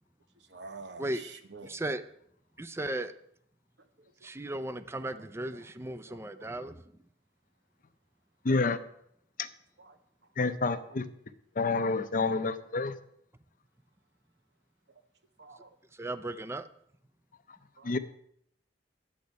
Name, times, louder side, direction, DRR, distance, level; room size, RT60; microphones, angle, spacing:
voice 1, 0.5-1.7 4.2-4.3 6.1-6.5 9.8-9.9 10.9-11.0 15.4-15.7 17.8-17.9, right 3 dB, 85° right, 8 dB, 1.1 m, -47 dB
voice 2, 1.6-2.0 2.6-3.1 4.2-6.8 15.9-16.7, right 1 dB, 15° right, 12 dB, 0.5 m, -36 dB
voice 3, 8.4-8.8 9.4-9.5 10.4-11.0 11.6-12.9 17.8-18.0, left 3 dB, 50° left, 11 dB, 0.7 m, -28 dB
10.5 x 8.0 x 5.3 m, 0.70 s
head